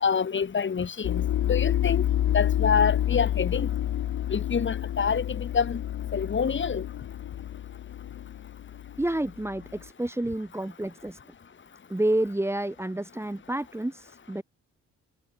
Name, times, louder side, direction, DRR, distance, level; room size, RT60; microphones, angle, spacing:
voice 1, 0.0-2.1 2.3-3.7 4.3-5.8 6.1-6.8, left 6 dB, 40° left, 3.3 m, -26 dB
sound 1, 1.0-9.7, left 12 dB, 70° left, 1.8 m, -29 dB
voice 2, 9.0-11.2 11.9-14.4, right 1 dB, 10° right, 3.1 m, -29 dB
cardioid pair, 90°, 30 cm